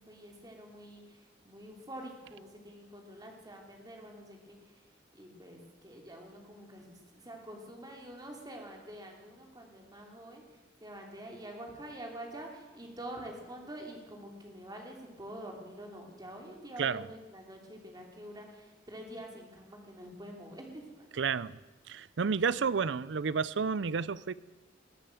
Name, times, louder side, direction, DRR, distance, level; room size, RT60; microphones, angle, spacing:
voice 1, 0.0-21.1, right 1 dB, 20° right, 3.0 m, -47 dB
voice 2, 21.2-21.6 21.9-24.3, right 5 dB, 70° right, 0.5 m, -31 dB
20.0 x 9.1 x 7.8 m
head